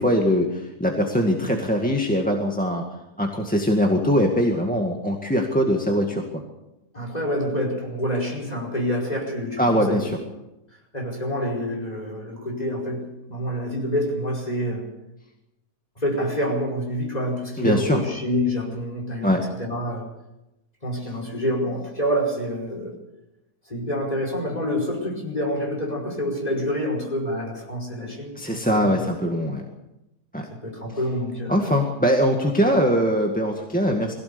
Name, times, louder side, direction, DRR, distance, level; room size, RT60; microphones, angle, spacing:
voice 1, 0.0-2.8 3.2-6.4 9.6-10.2 17.6-18.0 19.2-19.4 28.3-29.6 30.3-30.4 31.5-34.1, equal, 5° left, 1 dB, 1.8 m, -22 dB
voice 2, 6.9-10.2 10.9-14.9 16.0-20.1 20.8-23.0 23.6-29.0 30.5-31.8, equal, 25° left, 0 dB, 5.2 m, -27 dB
22.0 x 16.5 x 7.0 m, 0.95 s
omnidirectional pair, 1.6 m